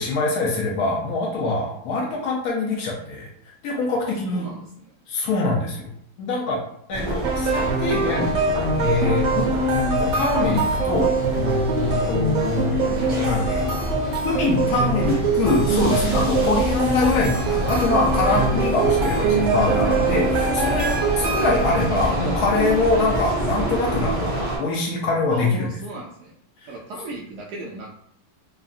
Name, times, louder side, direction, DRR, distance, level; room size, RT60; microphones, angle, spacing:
voice 1, 0.0-3.3 3.6-4.5 5.1-5.9 6.2-6.6 6.9-8.3 8.8-13.6 14.2-25.8, left 3 dB, 70° left, -2 dB, 0.9 m, -24 dB
voice 2, 4.3-4.9 11.7-12.0 14.6-15.3 15.8-16.3 20.7-21.1 25.3-26.3 26.7-27.9, right 2 dB, 75° right, -2 dB, 0.9 m, -37 dB
sound 1, 6.9-24.6, right 1 dB, 50° right, 0.6 m, -27 dB
sound 2, 7.2-21.9, right 3 dB, 90° right, 1.4 m, -24 dB
3.6 x 2.1 x 2.4 m, 0.66 s
omnidirectional pair, 2.1 m